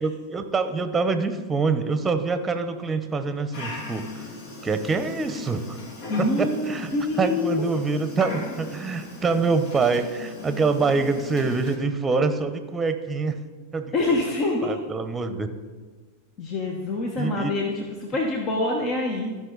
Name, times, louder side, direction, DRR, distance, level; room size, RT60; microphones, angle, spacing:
voice 1, 0.0-4.3 4.6-5.8 6.2-6.9 7.2-13.4 13.7-13.9 14.6-15.5 17.2-17.5, right 4 dB, 20° right, 9 dB, 0.9 m, -25 dB
Dog, 3.5-11.8, left 2 dB, 60° left, 2.1 m, -38 dB
voice 2, 6.1-7.6 13.9-14.8 16.4-19.4, left 2 dB, 40° left, 1 dB, 1.2 m, -26 dB
15.0 x 5.5 x 4.0 m, 1.4 s
hypercardioid pair, 105°, 0 cm